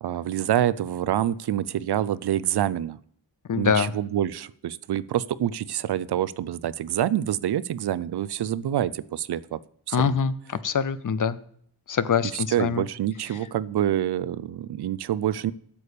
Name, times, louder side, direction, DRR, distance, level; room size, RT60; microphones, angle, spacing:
voice 1, 0.0-3.0 3.6-9.6 9.9-10.1 12.3-15.5, right 11 dB, 70° right, 17 dB, 0.5 m, -26 dB
voice 2, 3.5-3.9 9.9-11.4 11.9-12.8, left 6 dB, 50° left, 15 dB, 0.6 m, -24 dB
8.4 x 7.0 x 6.6 m, 0.63 s
wide cardioid pair, 115°, 41 cm